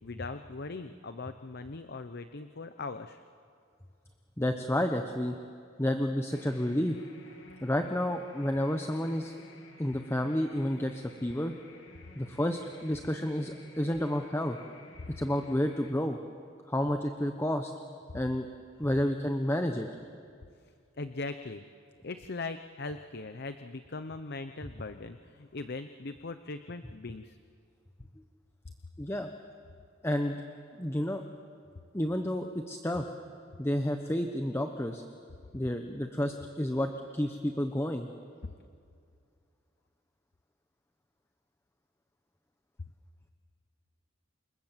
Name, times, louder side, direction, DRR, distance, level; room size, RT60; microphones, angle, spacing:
voice 1, 0.0-3.2 21.0-21.6 22.0-27.4 38.4-38.5, left 3 dB, 55° left, 10 dB, 0.8 m, -40 dB
voice 2, 4.4-5.3 5.8-7.0 7.6-9.4 9.8-11.5 12.2-14.6 15.2-16.2 16.7-17.7 18.1-18.5 18.8-19.9 29.0-29.3 30.0-30.4 30.8-31.2 31.9-33.0 33.6-35.0 35.5-38.1, left 1 dB, 15° left, 5 dB, 1.1 m, -30 dB
sound 1, 6.3-15.9, left 2 dB, 75° left, 2.7 m, -55 dB
29.0 x 26.5 x 7.5 m, 2.3 s
head